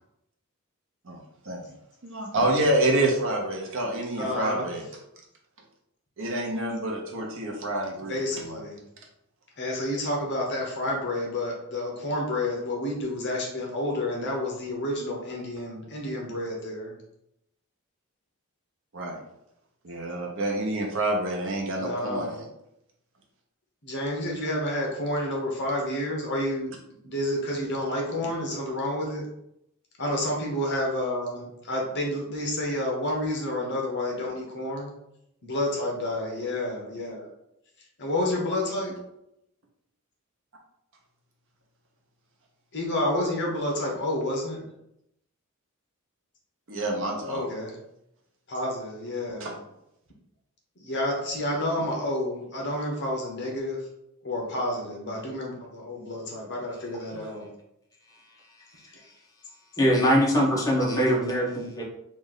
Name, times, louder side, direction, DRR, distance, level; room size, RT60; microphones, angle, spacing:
voice 1, 2.0-4.8 6.2-8.6 18.9-19.2 19.8-22.5 46.7-47.5 49.4-49.5, right 1 dB, 60° right, 1 dB, 0.8 m, -28 dB
voice 2, 4.2-4.7 8.0-8.8 9.6-16.9 21.8-22.4 23.8-26.8 27.0-29.3 30.0-34.9 35.4-37.3 38.0-39.0 42.7-44.7 47.2-47.8 48.5-49.5 50.8-53.8 54.2-57.5, left 1 dB, 50° left, -1 dB, 1.0 m, -29 dB
voice 3, 58.7-59.1 59.8-61.8, equal, 15° left, -3 dB, 0.9 m, -23 dB
3.2 x 2.5 x 3.9 m, 0.80 s
head